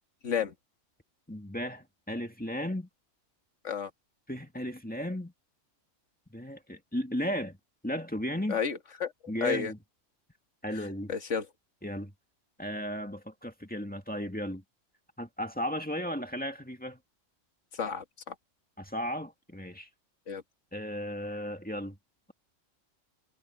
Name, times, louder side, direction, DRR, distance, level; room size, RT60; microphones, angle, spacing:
voice 1, 0.2-0.5 3.6-3.9 8.5-9.1 9.4-9.7 10.7-11.5 17.7-18.4 20.3-20.4, left 6 dB, 65° left, 1.8 m, -32 dB
voice 2, 1.3-2.9 4.3-5.3 6.3-7.6 7.8-8.6 9.3-9.8 10.6-11.1 11.8-12.1 12.6-14.6 15.2-17.0 18.8-19.9 20.7-22.0, equal, 5° left, 2.0 m, -35 dB
omnidirectional pair, 1.3 m